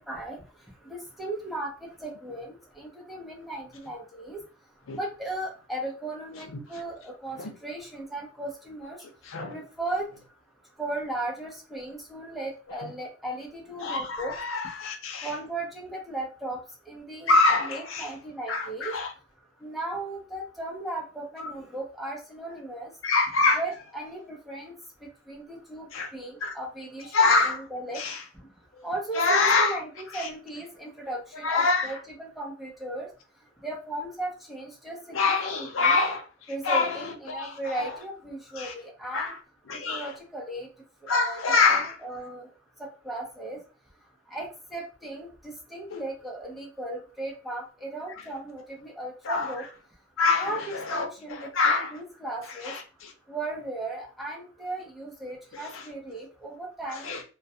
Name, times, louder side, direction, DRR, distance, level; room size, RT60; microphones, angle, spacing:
voice 1, 0.1-0.4 0.9-4.4 4.9-7.4 7.6-9.0 9.5-10.1 10.8-14.3 15.2-16.6 16.9-17.3 17.6-18.9 19.6-22.9 23.6-24.7 25.3-25.9 26.1-28.0 28.8-33.1 33.6-36.0 36.5-39.3 39.9-40.7 41.1-41.4 41.7-42.5 43.0-43.6 44.3-49.6 50.4-52.7 53.3-57.1, right 2 dB, ahead, 0.6 m, -36 dB
voice 2, 9.2-9.6 12.8-12.9 13.8-15.3 17.3-18.1 18.5-19.1 21.4-21.5 23.0-23.6 25.9-26.1 26.4-26.5 27.1-27.7 27.9-28.2 28.7-28.9 29.1-29.8 30.1-30.3 31.4-32.0 35.1-36.2 36.6-37.9 38.6-38.7 39.1-39.4 39.7-40.1 41.1-42.0 45.9-46.0 49.2-49.5 50.2-51.9 52.6-53.1 55.5-55.8 56.9-57.2, left 3 dB, 85° left, 0.5 m, -25 dB
2.2 x 2.2 x 2.6 m
head